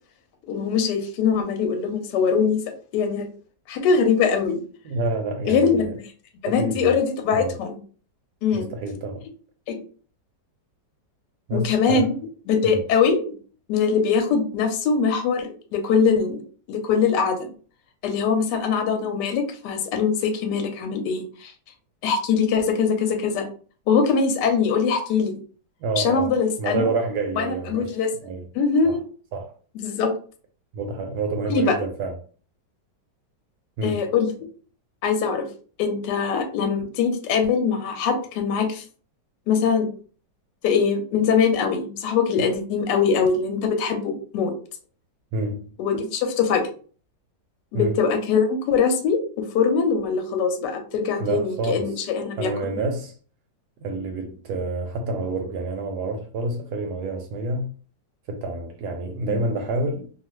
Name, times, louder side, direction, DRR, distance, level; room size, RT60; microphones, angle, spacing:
voice 1, 0.5-2.6 2.9-3.3 3.7-4.6 5.5-5.9 6.4-7.8 8.4-8.7 9.7-9.8 11.5-12.1 12.5-13.4 13.7-16.4 16.7-17.5 18.0-21.5 22.0-23.5 23.9-25.3 26.0-26.8 27.4-28.1 28.5-29.0 29.8-30.1 31.5-31.8 33.8-34.3 35.0-35.5 35.8-38.8 39.5-39.9 40.6-44.5 45.8-46.6 47.7-49.2 49.5-52.8 59.3-59.4, left 5 dB, 70° left, 1.2 m, -22 dB
voice 2, 4.8-5.9 6.4-7.0 7.3-7.6 8.5-9.2 11.5-12.2 12.6-12.9 25.8-28.0 28.2-28.5 28.8-29.0 29.3-29.5 30.7-32.2 33.8-34.1 45.3-45.7 47.7-48.0 51.2-51.9 52.4-53.1 53.8-57.7 58.3-60.1, right 2 dB, 70° right, 1.0 m, -28 dB
2.7 x 2.4 x 3.0 m
omnidirectional pair, 2.0 m